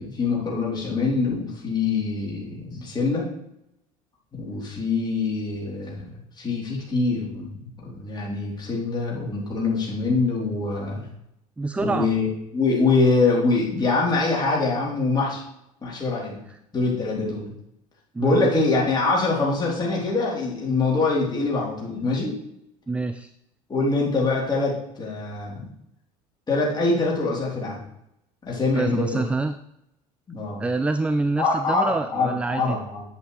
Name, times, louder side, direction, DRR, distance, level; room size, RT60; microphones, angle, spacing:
voice 1, 0.0-3.3 4.3-11.0 11.8-15.4 15.8-16.4 16.7-17.5 18.2-22.4 23.7-25.6 26.5-27.8 28.4-29.2 30.3-30.6 31.4-33.0, left 3 dB, 20° left, -4 dB, 3.4 m, -24 dB
voice 2, 11.6-12.1 18.1-18.5 22.9-23.3 28.8-29.6 30.6-32.8, right 3 dB, 5° right, 11 dB, 0.3 m, -26 dB
8.8 x 7.8 x 3.2 m, 0.78 s
figure-of-eight pair, 65°, 19 cm